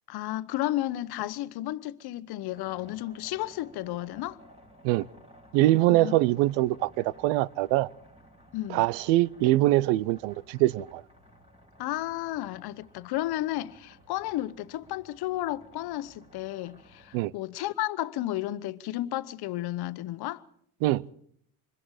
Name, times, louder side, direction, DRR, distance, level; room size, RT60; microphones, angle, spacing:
voice 1, 0.1-4.4 5.9-6.2 8.5-8.8 11.8-20.4, left 15 dB, 60° left, 1.1 m, -33 dB
sound 1, 2.5-17.3, equal, 15° right, 6.9 m, -56 dB
voice 2, 5.5-7.9 8.7-11.0 17.1-17.3 20.8-21.1, right 17 dB, 80° right, 0.7 m, -23 dB
26.0 x 22.0 x 4.9 m
supercardioid pair, 95°, 43 cm